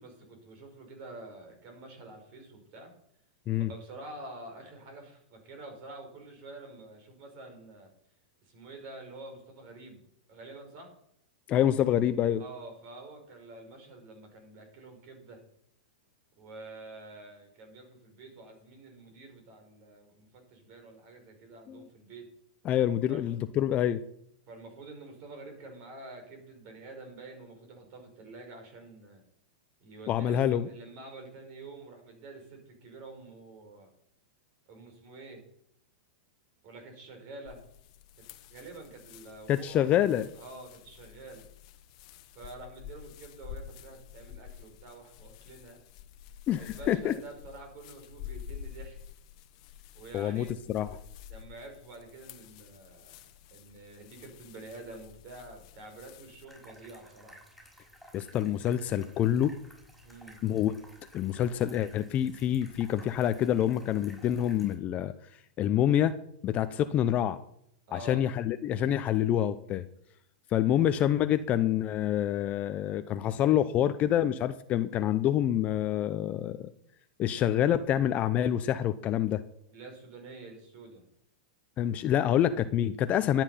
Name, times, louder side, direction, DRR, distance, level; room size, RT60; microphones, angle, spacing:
voice 1, 0.0-2.9 3.7-7.9 8.5-10.0 10.3-10.9 12.4-15.4 16.4-22.3 23.1-23.3 24.5-29.2 29.8-33.9 34.7-35.4 36.6-37.6 38.2-38.3 38.5-39.9 40.4-41.5 42.3-45.8 46.6-49.0 49.9-50.6 51.3-53.1 53.5-57.4 60.0-60.4 67.9-68.2 79.7-81.0, right 2 dB, 45° right, 5 dB, 5.1 m, -47 dB
voice 2, 11.5-12.4 21.7-21.9 22.6-24.0 30.1-30.7 39.5-40.3 46.5-47.2 50.1-50.9 58.1-59.5 60.4-60.7 61.1-65.1 65.6-66.1 66.4-67.4 67.9-69.8 70.5-76.7 77.2-79.4 81.8-83.4, left 11 dB, 30° left, 11 dB, 0.6 m, -27 dB
sound 1, 37.4-56.4, left 9 dB, 55° left, 1.2 m, -49 dB
sound 2, 56.4-64.7, equal, ahead, 5.7 m, -55 dB
12.5 x 8.9 x 5.7 m, 0.71 s
hypercardioid pair, 125°, 4 cm